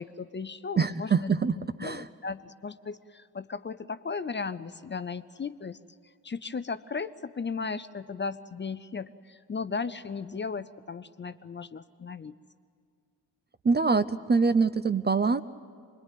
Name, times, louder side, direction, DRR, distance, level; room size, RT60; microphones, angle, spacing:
voice 1, 0.0-1.3 1.8-5.8 6.2-12.3, left 5 dB, 25° left, 13 dB, 0.6 m, -36 dB
voice 2, 0.8-1.5 1.8-2.0 13.6-15.4, right 4 dB, 20° right, 14 dB, 0.6 m, -24 dB
25.0 x 20.5 x 9.3 m, 2.3 s
hypercardioid pair, 45°, 48 cm